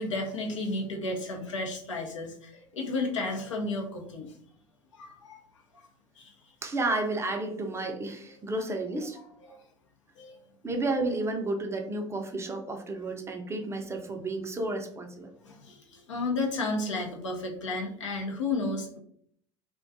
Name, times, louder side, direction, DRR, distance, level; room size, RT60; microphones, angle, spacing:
voice 1, 0.0-4.3 4.9-5.4 6.2-6.3 9.5-9.6 10.2-10.4 15.4-19.0, left 2 dB, 85° left, 0.5 m, -32 dB
voice 2, 6.6-9.2 10.6-15.3, right 2 dB, 15° right, 0.4 m, -31 dB
2.4 x 2.2 x 2.5 m
figure-of-eight pair, 70°, 16 cm